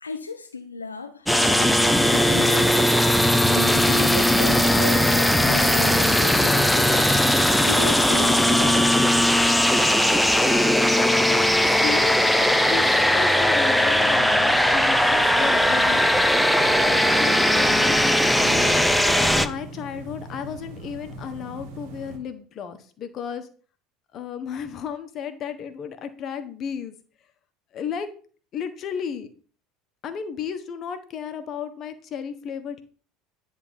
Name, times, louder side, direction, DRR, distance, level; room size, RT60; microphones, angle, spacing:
voice 1, 0.0-2.9 3.5-7.1 7.7-9.0, left 4 dB, 85° left, 0.5 m, -35 dB
sound 1, 1.3-19.5, left 1 dB, ahead, 0.7 m, -19 dB
voice 2, 11.3-16.1 16.9-18.0 18.3-23.5 24.1-26.9 27.7-28.1 28.5-29.3 30.0-32.8, left 7 dB, 40° left, 1.2 m, -33 dB
sound 2, 13.9-22.2, right 1 dB, 60° right, 1.8 m, -40 dB
9.5 x 3.6 x 5.6 m
figure-of-eight pair, 70°, 0 cm